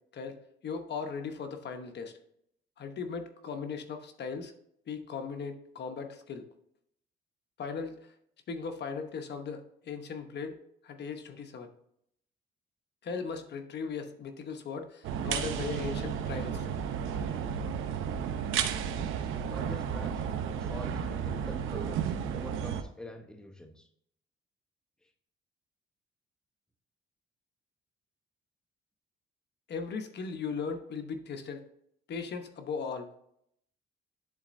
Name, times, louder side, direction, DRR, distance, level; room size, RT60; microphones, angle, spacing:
voice 1, 0.6-2.1 2.8-4.5 4.9-6.4 7.6-8.0 8.5-10.6 10.8-11.7 13.0-16.7 29.7-31.6 32.1-33.1, left 5 dB, 60° left, 6 dB, 1.0 m, -38 dB
sound 1, 15.0-22.8, right 8 dB, 85° right, 0.7 m, -33 dB
voice 2, 19.4-20.2 20.6-23.9, left 1 dB, 5° left, 4 dB, 0.9 m, -46 dB
10.5 x 4.1 x 2.6 m, 0.72 s
cardioid pair, 90°, 20 cm